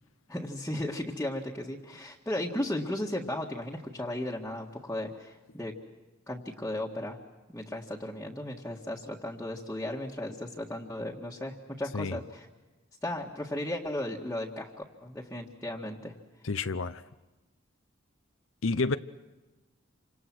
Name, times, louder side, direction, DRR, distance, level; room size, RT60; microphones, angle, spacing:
voice 1, 0.3-5.7 6.3-7.2 7.5-12.5 13.0-16.1, left 1 dB, 10° left, 1.8 m, -35 dB
voice 2, 16.4-17.0 18.6-19.0, left 3 dB, 75° left, 0.8 m, -29 dB
28.5 x 26.0 x 6.2 m
head